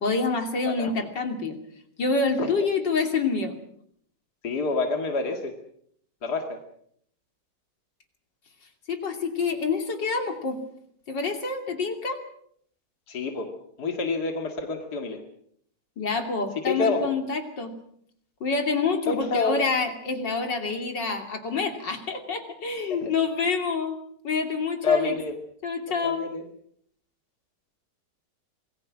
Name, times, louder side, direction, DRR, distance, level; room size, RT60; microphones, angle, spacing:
voice 1, 0.0-1.6 2.0-3.5 8.9-10.6 11.1-12.2 16.0-17.7 18.4-24.0 24.2-25.1 25.6-26.2, left 4 dB, 80° left, 4 dB, 3.5 m, -27 dB
voice 2, 4.4-5.5 6.2-6.4 13.1-13.5 13.8-15.2 16.7-17.0 19.1-19.6 22.9-23.1 24.8-25.4 26.0-26.4, left 4 dB, 60° left, 3 dB, 2.8 m, -27 dB
27.0 x 20.5 x 6.2 m, 0.67 s
omnidirectional pair, 1.9 m